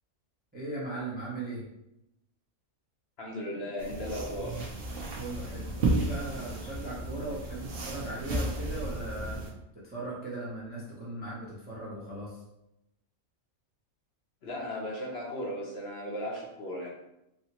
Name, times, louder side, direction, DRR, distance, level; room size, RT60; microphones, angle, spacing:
voice 1, 0.5-1.6 5.2-9.4 9.8-12.4, right 2 dB, 10° right, -6 dB, 0.5 m, -38 dB
voice 2, 3.2-4.7 14.4-16.9, equal, 55° left, -3 dB, 0.9 m, -36 dB
sound 1, 3.8-9.5, right 2 dB, 55° right, 0.7 m, -33 dB
4.0 x 2.0 x 2.9 m, 0.86 s
omnidirectional pair, 1.4 m